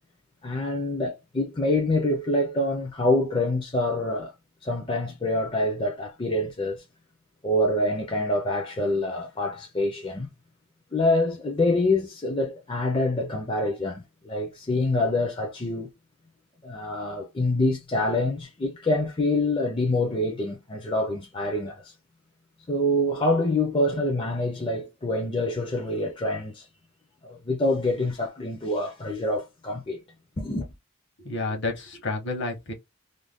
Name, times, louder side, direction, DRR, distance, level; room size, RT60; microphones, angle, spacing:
voice 1, 0.4-4.3 4.6-6.8 7.4-10.3 10.9-15.9 16.6-21.9 22.7-26.7 27.2-30.0 30.4-30.7, left 1 dB, 25° left, 0.4 m, -26 dB
voice 2, 31.2-32.7, left 2 dB, 55° left, 0.9 m, -30 dB
2.5 x 2.2 x 3.4 m
head